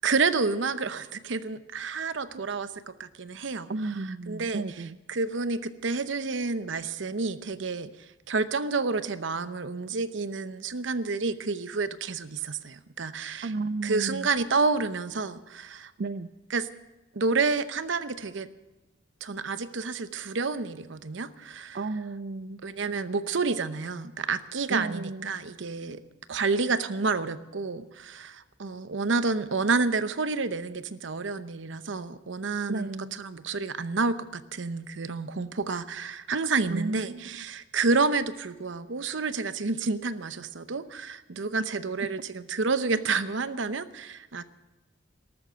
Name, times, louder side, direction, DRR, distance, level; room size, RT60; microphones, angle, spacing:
voice 1, 0.0-3.7 4.3-4.6 5.1-7.9 8.3-13.5 13.8-15.9 16.5-16.7 17.1-18.5 19.2-21.8 22.6-26.0 26.3-32.9 33.2-44.4, right 4 dB, 70° right, 13 dB, 0.8 m, -29 dB
voice 2, 3.7-5.0 13.4-14.3 16.0-16.3 21.7-22.6 24.7-25.4 32.7-33.1 36.7-37.4, right 3 dB, 55° right, 12 dB, 0.4 m, -33 dB
13.5 x 13.0 x 7.7 m, 1.1 s
head